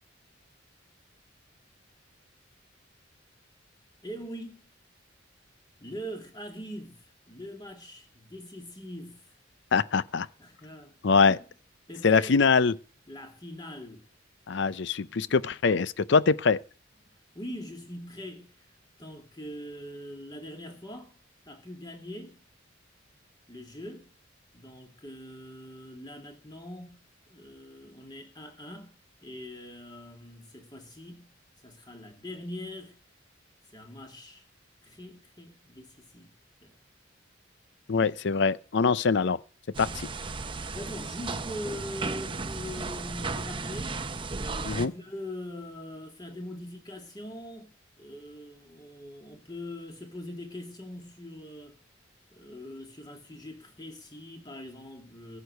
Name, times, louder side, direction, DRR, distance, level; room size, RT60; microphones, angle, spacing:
voice 1, 4.0-4.7 5.8-9.2 10.4-11.0 11.3-11.4 11.9-12.4 13.1-14.1 17.3-18.5 19.0-21.1 21.5-22.4 23.5-24.1 24.5-27.0 27.3-28.9 29.2-31.3 31.6-33.0 33.7-34.4 34.8-36.3 36.6-36.7 40.7-44.0 44.4-47.7 48.0-51.8 52.3-55.4, equal, 20° left, 2.5 m, -42 dB
voice 2, 9.7-10.3 11.0-11.4 12.0-12.7 14.5-16.6 37.9-39.4 39.8-39.9 44.6-44.9, left 5 dB, 65° left, 0.5 m, -23 dB
sound 1, 39.7-44.9, right 3 dB, 25° right, 0.7 m, -35 dB
14.5 x 6.6 x 7.9 m
head